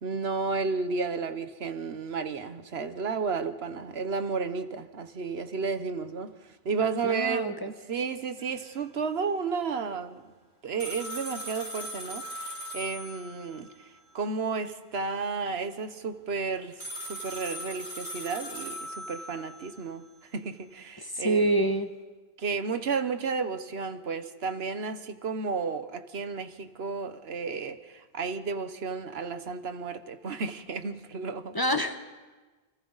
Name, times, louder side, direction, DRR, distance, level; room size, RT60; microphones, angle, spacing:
voice 1, 0.0-6.3 6.6-7.5 7.9-10.2 10.6-13.7 14.1-20.0 20.3-21.5 22.4-31.5, right 4 dB, 80° right, 1.3 m, -32 dB
voice 2, 7.0-7.7 21.0-21.9 31.5-32.0, right 1 dB, 25° left, 1.0 m, -26 dB
sound 1, 10.8-13.7 16.8-19.8, equal, 45° left, 4.6 m, -39 dB
29.5 x 25.0 x 4.1 m
omnidirectional pair, 1.0 m